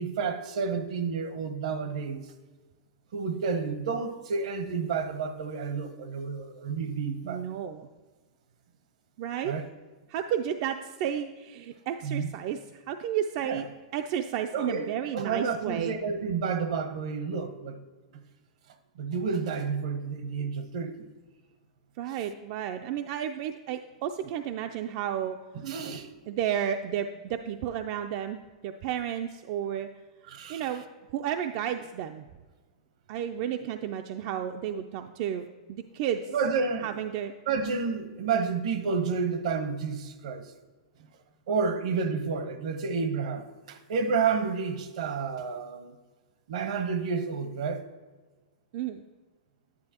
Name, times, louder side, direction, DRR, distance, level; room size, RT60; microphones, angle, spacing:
voice 1, 0.0-2.2 3.1-7.5 9.4-9.6 12.0-12.3 13.4-13.6 14.5-17.8 19.0-21.1 25.5-26.1 30.3-30.7 36.3-36.9 37.5-40.5 41.5-45.9 46.5-47.8, right 5 dB, 70° right, 0.8 m, -30 dB
voice 2, 7.2-7.9 9.2-9.5 10.1-13.7 13.9-16.0 22.0-25.4 26.3-29.9 30.5-30.8 31.1-32.3 33.1-36.2 36.8-37.3 48.7-49.0, right 9 dB, 45° right, 0.3 m, -32 dB
10.5 x 9.7 x 2.9 m
supercardioid pair, 150°, 4 cm